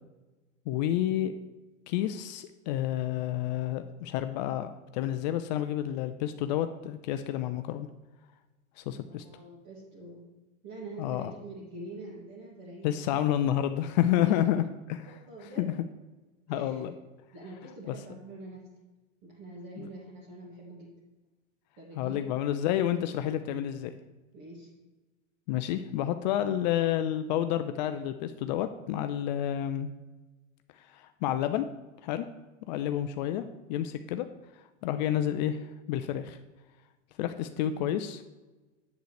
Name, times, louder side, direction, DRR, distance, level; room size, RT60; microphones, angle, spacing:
voice 1, 0.7-1.3 1.9-7.9 8.8-9.2 11.0-11.3 12.8-15.1 15.6-15.7 16.5-16.9 17.9-18.0 19.8-19.9 22.0-23.9 25.5-29.9 30.8-31.7 32.0-32.3 32.7-33.4 33.7-34.3 34.8-36.4 37.2-38.2, left 11 dB, 35° left, 9 dB, 0.4 m, -29 dB
voice 2, 9.1-10.3 10.6-13.1 14.2-14.3 15.0-15.7 16.5-16.9 17.3-18.6 19.2-20.9 21.8-22.5 24.3-24.7 29.1-29.3 37.6-37.9, right 2 dB, 45° right, -5 dB, 2.2 m, -45 dB
7.9 x 7.9 x 3.2 m, 1.2 s
hypercardioid pair, 105°, 39 cm